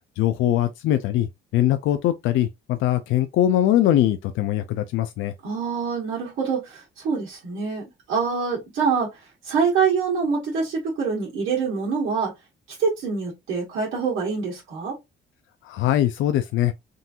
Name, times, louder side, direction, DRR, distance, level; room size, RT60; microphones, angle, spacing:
voice 1, 0.2-1.3 1.5-5.3 15.7-16.7, left 12 dB, 85° left, 0.4 m, -21 dB
voice 2, 5.4-9.1 9.4-12.3 12.8-14.9, right 5 dB, 85° right, 1.6 m, -25 dB
3.7 x 2.7 x 2.4 m
cardioid pair, 90°, 20 cm